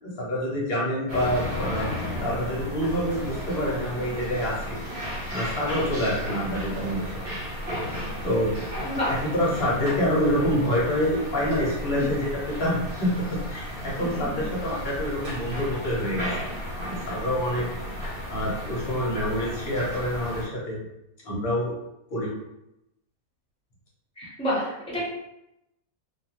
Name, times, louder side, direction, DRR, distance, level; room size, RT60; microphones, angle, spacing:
voice 1, 0.0-1.9 2.2-4.8 5.3-7.1 8.2-8.5 9.1-16.3 16.9-17.7 18.0-20.8 21.2-21.7 22.1-22.3, equal, 50° left, -5 dB, 0.8 m, -27 dB
sound 1, 1.1-20.4, equal, 50° right, 1.0 m, -34 dB
voice 2, 14.0-14.4 24.2-25.1, equal, 5° left, -8 dB, 0.6 m, -29 dB
2.4 x 2.4 x 2.9 m, 0.87 s
omnidirectional pair, 1.7 m